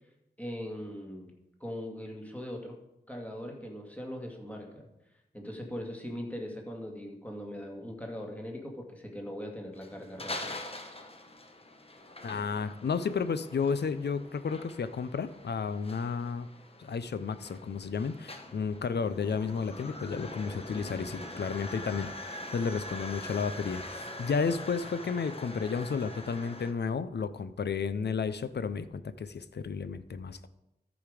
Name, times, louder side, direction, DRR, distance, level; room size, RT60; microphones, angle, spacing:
voice 1, 0.4-1.3 1.6-2.7 3.1-4.9 5.3-10.6, equal, 10° left, 0 dB, 2.0 m, -40 dB
sound 1, 9.8-26.7, left 1 dB, 35° left, 1.0 m, -44 dB
voice 2, 12.2-16.5 16.8-30.5, left 5 dB, 75° left, 14 dB, 0.6 m, -32 dB
13.5 x 5.1 x 5.0 m, 0.90 s
wide cardioid pair, 85°, 18 cm